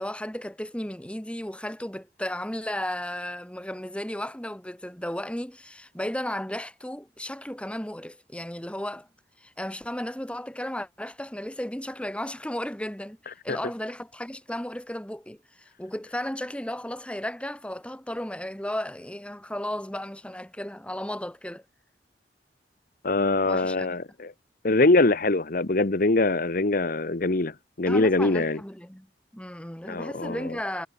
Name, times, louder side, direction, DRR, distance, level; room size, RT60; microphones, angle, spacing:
voice 1, 0.0-9.1 9.4-13.2 13.4-21.6 23.5-24.0 27.8-29.1 29.3-30.9, left 1 dB, 5° left, 1.9 m, -34 dB
voice 2, 23.0-24.3 24.6-27.5 27.8-28.6 29.9-30.4, left 2 dB, 55° left, 1.1 m, -23 dB
head